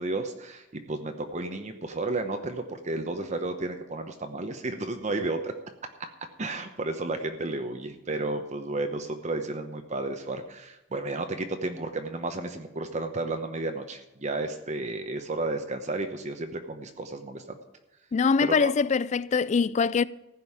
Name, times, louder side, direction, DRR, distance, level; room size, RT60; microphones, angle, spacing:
voice 1, 0.0-5.5 6.4-17.6 18.4-18.7, right 2 dB, 40° right, 0.9 m, -32 dB
voice 2, 18.1-20.0, left 5 dB, 40° left, 0.3 m, -23 dB
15.0 x 5.5 x 9.7 m
head